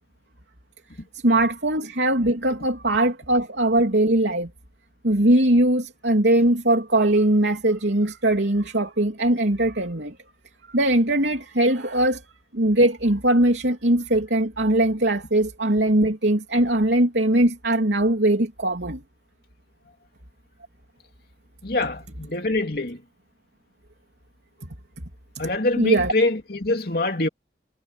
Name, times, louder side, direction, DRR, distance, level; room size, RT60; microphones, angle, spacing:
voice 1, 1.2-4.5 5.0-10.1 10.7-12.2 12.5-19.0 25.8-26.1, right 1 dB, 80° right, 3.2 m, -20 dB
voice 2, 21.6-23.0 25.4-27.3, left 2 dB, 55° left, 2.9 m, -24 dB
head